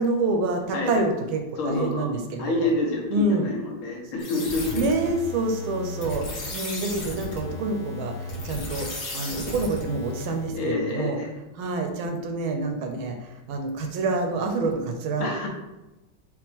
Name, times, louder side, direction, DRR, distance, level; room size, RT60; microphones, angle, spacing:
voice 1, 0.0-2.7 3.1-3.5 4.7-6.3 6.5-11.2 11.6-15.3, right 2 dB, 80° right, 4 dB, 1.4 m, -27 dB
voice 2, 0.7-1.0 1.6-2.1 2.4-4.8 10.5-11.3 15.2-15.5, left 2 dB, 75° left, -2 dB, 1.9 m, -28 dB
sound 1, 4.2-10.5, left 2 dB, 55° left, 1.6 m, -35 dB
5.0 x 2.8 x 3.4 m, 1.0 s
omnidirectional pair, 2.4 m